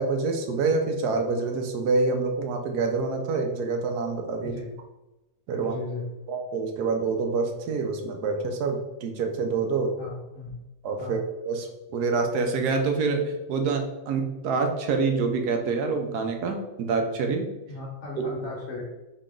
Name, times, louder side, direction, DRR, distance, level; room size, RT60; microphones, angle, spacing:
voice 1, 0.0-4.6 5.5-5.8 6.3-9.9 10.8-11.2 11.5-17.5, right 4 dB, 75° right, 4 dB, 1.2 m, -26 dB
voice 2, 4.4-4.7 5.5-6.0 10.0-10.6 11.0-11.2 17.7-18.8, left 3 dB, 45° left, -4 dB, 1.5 m, -37 dB
4.2 x 3.2 x 3.7 m, 0.99 s
omnidirectional pair, 1.8 m